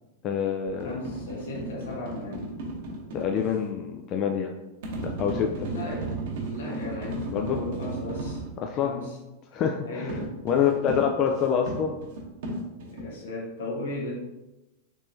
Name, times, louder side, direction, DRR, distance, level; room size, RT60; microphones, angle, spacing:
voice 1, 0.2-1.0 3.1-4.5 5.2-5.7 7.3-7.6 8.6-8.9 9.5-10.2 10.4-12.0, left 8 dB, 40° left, 2 dB, 0.3 m, -26 dB
sound 1, 0.7-3.5 4.8-8.6 10.1-13.1, right 2 dB, 65° right, 0.8 m, -35 dB
voice 2, 0.8-2.5 5.6-6.2 6.5-8.4 8.8-9.2 9.8-10.3 10.6-10.7 12.9-14.1, left 2 dB, 80° left, -4 dB, 1.3 m, -36 dB
3.5 x 3.1 x 2.6 m, 1.0 s
hypercardioid pair, 105°, 0 cm